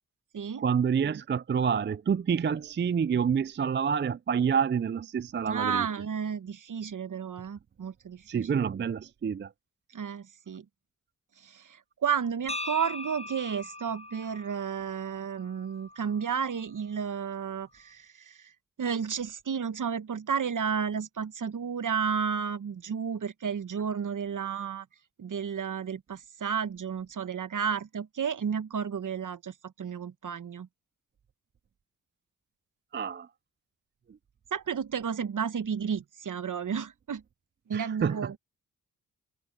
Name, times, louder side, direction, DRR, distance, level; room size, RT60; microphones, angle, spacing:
voice 1, 0.6-5.9 8.3-9.5 32.9-33.3 34.1-34.2 37.7-38.4, right 7 dB, 30° right, 0.5 m, -28 dB
voice 2, 5.4-8.5 9.9-10.6 11.4-18.5 18.8-24.9 25.2-30.7 34.5-37.2 37.7-38.4, right 7 dB, 60° right, 1.2 m, -32 dB
sound 1, 12.5-16.6, left 2 dB, 15° left, 7.0 m, -41 dB
supercardioid pair, 45°, 36 cm